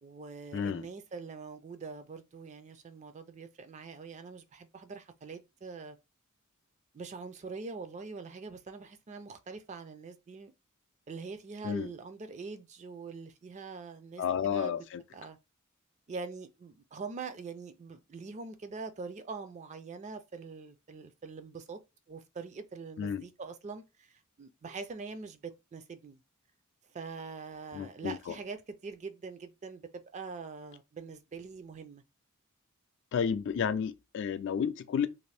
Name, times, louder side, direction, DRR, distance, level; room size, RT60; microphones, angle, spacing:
voice 1, 0.0-6.0 6.9-10.5 11.1-14.2 14.5-14.8 15.1-15.4 16.1-21.8 22.1-26.2 26.9-32.0, right 4 dB, 35° right, 0.4 m, -43 dB
voice 2, 0.5-0.9 11.6-11.9 14.2-15.0 23.0-23.2 27.7-28.3 33.1-35.1, left 7 dB, 60° left, 0.3 m, -31 dB
2.6 x 2.5 x 3.3 m
head